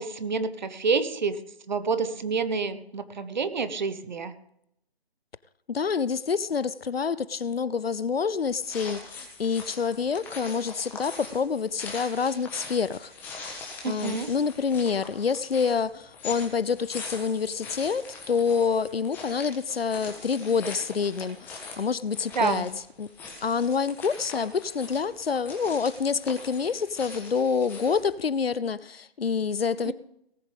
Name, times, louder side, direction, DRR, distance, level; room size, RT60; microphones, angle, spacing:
voice 1, 0.0-1.4 1.7-4.3 13.8-14.3 22.3-22.7 29.8-29.9, right 5 dB, 45° right, 1.2 m, -28 dB
voice 2, 5.7-13.1 13.8-22.7 23.0-23.1 23.4-29.9, left 6 dB, 70° left, 0.7 m, -27 dB
sound 1, 8.5-28.1, left 4 dB, 5° left, 1.4 m, -42 dB
18.5 x 7.2 x 5.2 m
figure-of-eight pair, 155°, 31 cm